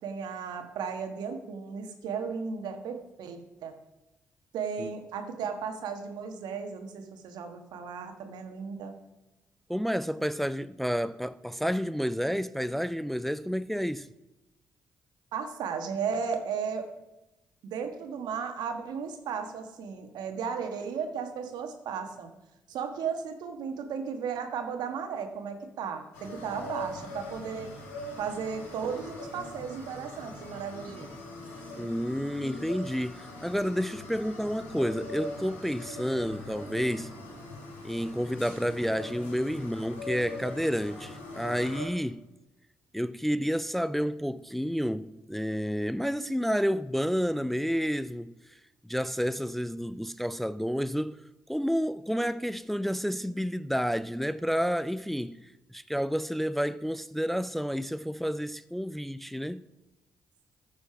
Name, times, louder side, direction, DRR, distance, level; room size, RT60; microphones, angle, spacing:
voice 1, 0.0-3.8 4.5-8.9 15.3-16.9 17.6-22.3 22.7-27.7 28.2-31.1, right 6 dB, 75° right, 1.3 m, -35 dB
voice 2, 9.7-14.1 31.8-37.1 37.8-42.2 42.9-48.3 48.9-51.2 51.5-55.4 55.7-59.7, equal, ahead, 0.4 m, -30 dB
sound 1, 26.1-41.9, left 1 dB, 90° left, 2.2 m, -42 dB
14.0 x 5.2 x 5.9 m
hypercardioid pair, 45°, 7 cm